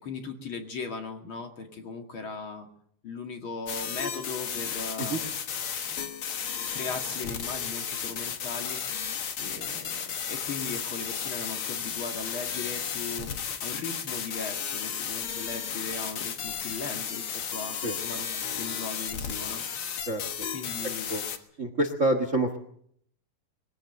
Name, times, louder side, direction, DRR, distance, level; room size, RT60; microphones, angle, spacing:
voice 1, 0.0-2.7 3.0-5.2 6.7-9.0 9.4-13.3 13.6-18.3 18.6-19.6 20.5-21.1, left 4 dB, 40° left, 4 dB, 2.2 m, -38 dB
sound 1, 3.7-21.4, left 7 dB, 55° left, 1.5 m, -34 dB
voice 2, 21.6-22.6, right 2 dB, 80° right, 7 dB, 0.6 m, -26 dB
22.0 x 16.5 x 7.8 m, 0.67 s
omnidirectional pair, 4.4 m